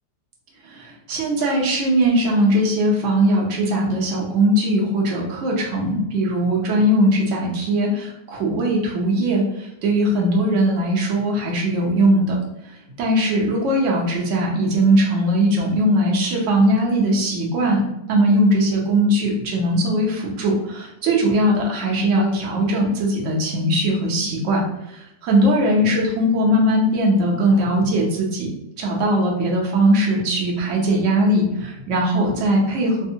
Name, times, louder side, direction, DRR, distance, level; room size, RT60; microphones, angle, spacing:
voice 1, 0.6-12.4 12.6-17.8 18.1-28.5 28.8-33.1, right 1 dB, 60° right, -1 dB, 0.8 m, -20 dB
3.4 x 2.1 x 2.6 m, 0.86 s
omnidirectional pair, 1.8 m